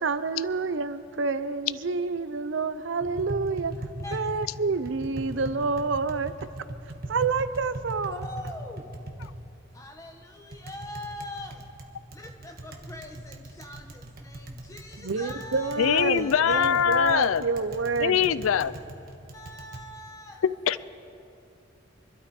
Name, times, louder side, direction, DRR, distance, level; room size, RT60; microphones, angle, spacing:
voice 1, 0.0-3.7 4.1-6.3 7.1-8.2 15.0-18.4, right 4 dB, 70° right, 13 dB, 0.6 m, -28 dB
Tap, 3.0-19.8, right 1 dB, 45° right, 1.3 m, -41 dB
voice 2, 8.1-9.0 9.7-11.7 12.1-16.7 19.3-20.4, left 1 dB, 15° left, 2 dB, 1.2 m, -42 dB
voice 3, 15.8-17.4 18.0-18.7 20.4-20.8, left 8 dB, 80° left, 16 dB, 0.4 m, -23 dB
25.0 x 12.5 x 4.3 m, 2.7 s
head